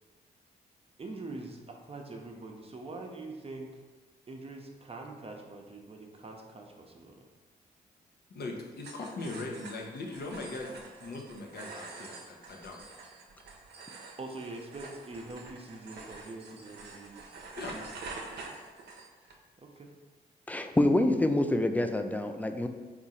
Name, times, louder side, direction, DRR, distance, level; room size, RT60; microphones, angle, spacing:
voice 1, 1.0-3.7 4.3-7.3 14.2-17.2 17.7-17.9 19.6-19.9, right 2 dB, 30° right, 1 dB, 0.6 m, -44 dB
voice 2, 8.3-12.8 17.6-17.8, left 2 dB, 60° left, 1 dB, 0.8 m, -40 dB
sound 1, 8.8-19.4, right 3 dB, 65° right, 0.6 m, -47 dB
voice 3, 20.5-22.7, left 1 dB, 10° left, 7 dB, 0.4 m, -26 dB
3.6 x 2.5 x 4.1 m, 1.3 s
supercardioid pair, 55°, 19 cm